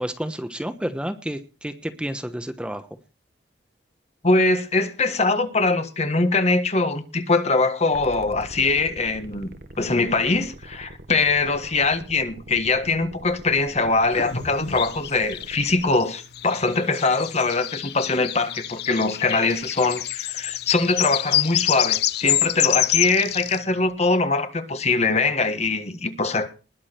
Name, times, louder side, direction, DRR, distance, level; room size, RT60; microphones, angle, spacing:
voice 1, 0.0-2.9, equal, 5° right, 1.1 m, -30 dB
voice 2, 4.2-26.5, left 3 dB, 40° left, 1.5 m, -22 dB
sound 1, 7.9-15.9, right 1 dB, 60° right, 1.7 m, -43 dB
sound 2, 14.1-17.7 18.0-19.9 20.1-22.0 22.3-24.2, equal, 80° left, 4.9 m, -43 dB
sound 3, 14.1-14.2 14.8-23.6, left 13 dB, 60° left, 0.6 m, -26 dB
20.5 x 7.3 x 4.4 m
head